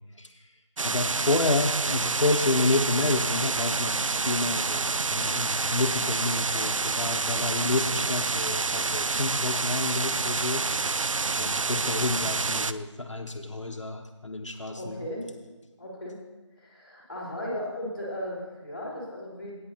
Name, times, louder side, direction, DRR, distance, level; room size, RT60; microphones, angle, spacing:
voice 1, 0.2-0.5 0.8-10.7 11.0-11.1 11.4-15.1, left 2 dB, 70° left, 3 dB, 0.9 m, -29 dB
sound 1, 0.8-12.7, right 4 dB, 85° right, 0.5 m, -28 dB
voice 2, 14.8-15.2 15.8-16.2 16.6-19.6, left 1 dB, 20° left, -4 dB, 2.7 m, -36 dB
19.0 x 9.5 x 2.7 m, 1.2 s
figure-of-eight pair, 175°, 16 cm